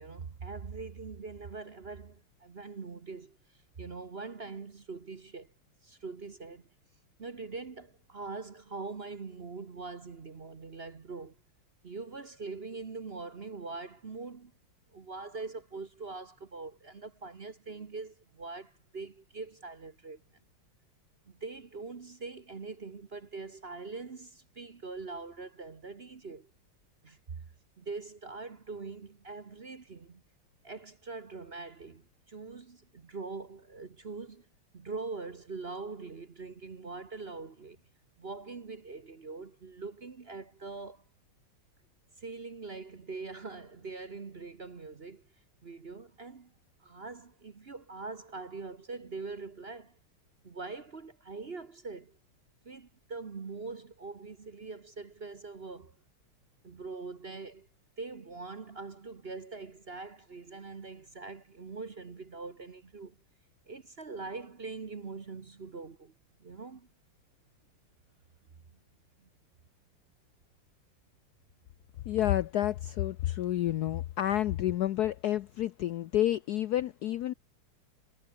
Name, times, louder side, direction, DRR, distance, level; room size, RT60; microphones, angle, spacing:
voice 1, 0.0-5.5 5.8-6.7 7.2-11.4 11.8-14.5 14.9-20.2 21.2-26.5 27.0-27.5 27.8-30.2 30.6-34.5 34.7-37.8 38.2-41.0 42.2-45.2 45.6-46.5 46.8-50.0 50.4-52.2 52.6-56.0 56.6-57.7 58.0-63.2 63.7-66.1 66.4-66.9 69.2-69.3, right 4 dB, 35° right, 1.1 m, -43 dB
voice 2, 72.0-77.3, left 13 dB, 90° left, 0.8 m, -29 dB
omnidirectional pair, 2.4 m